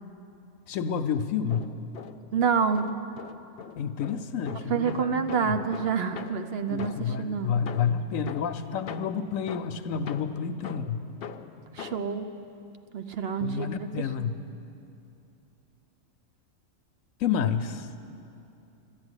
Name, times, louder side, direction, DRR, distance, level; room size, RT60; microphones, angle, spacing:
voice 1, 0.7-1.7 3.8-5.6 6.7-11.0 13.4-14.4 17.2-17.9, left 7 dB, 80° left, 10 dB, 1.0 m, -29 dB
sound 1, 1.3-2.4 2.7-7.3 7.7-12.2, left 7 dB, 60° left, 0.7 m, -42 dB
voice 2, 2.3-2.9 4.7-7.5 11.7-12.3 12.9-14.3, right 6 dB, 55° right, 9 dB, 0.8 m, -28 dB
13.0 x 10.5 x 9.6 m, 2.7 s
omnidirectional pair, 1.4 m